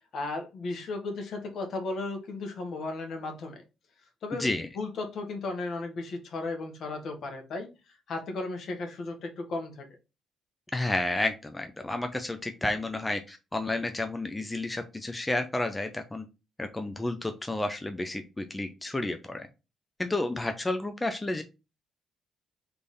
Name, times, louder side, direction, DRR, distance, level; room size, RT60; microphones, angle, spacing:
voice 1, 0.1-3.6 4.2-4.5 4.7-9.9, left 3 dB, 65° left, 4 dB, 1.4 m, -35 dB
voice 2, 4.3-4.7 10.7-16.2 16.6-19.5 20.0-21.4, left 2 dB, 15° left, 7 dB, 0.6 m, -31 dB
3.5 x 3.4 x 4.1 m, 0.28 s
cardioid pair, 90°, 0 cm